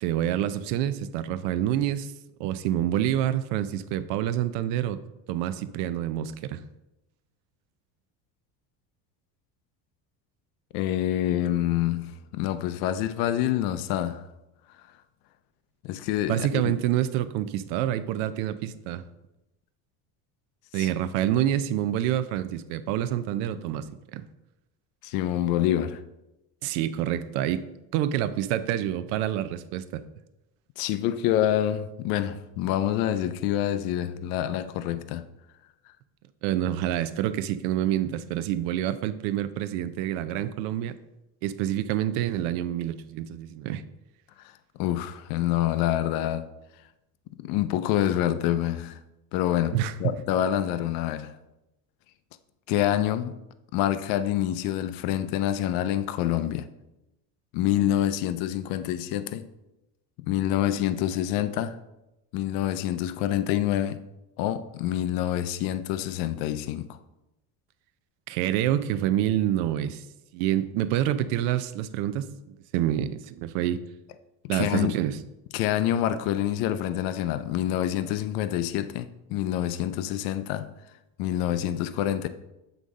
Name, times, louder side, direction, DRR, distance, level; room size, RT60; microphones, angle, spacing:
voice 1, 0.0-2.1 2.4-5.0 5.3-6.6 16.3-19.0 20.7-24.3 26.6-27.7 27.9-30.0 36.4-40.9 41.4-43.8 49.7-49.9 68.3-70.0 70.3-72.3 72.7-73.8 74.5-75.2, right 11 dB, 90° right, 0.6 m, -27 dB
voice 2, 10.7-14.2 15.8-16.7 20.7-20.9 25.0-26.0 30.8-35.3 44.8-46.5 47.4-49.0 49.3-51.4 52.7-53.4 53.7-56.7 57.5-59.5 60.2-61.8 62.3-64.0 64.4-67.0 74.5-75.0 75.5-80.7 81.2-82.3, left 12 dB, 60° left, 0.5 m, -27 dB
8.1 x 4.0 x 3.6 m
cardioid pair, 170°, 39 cm